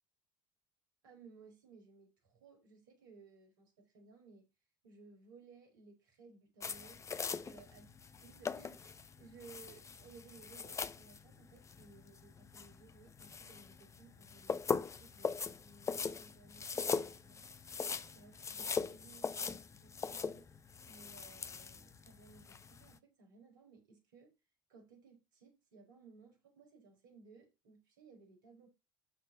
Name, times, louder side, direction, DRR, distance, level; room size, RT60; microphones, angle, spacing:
voice 1, 1.0-4.4 4.8-7.0 7.4-7.9 8.2-20.5 20.9-24.3 24.7-28.7, right 4 dB, 70° right, 5.3 m, -60 dB
sound 1, 6.6-22.9, left 5 dB, 25° left, 1.0 m, -41 dB
12.5 x 4.5 x 7.2 m
figure-of-eight pair, 60°, 11 cm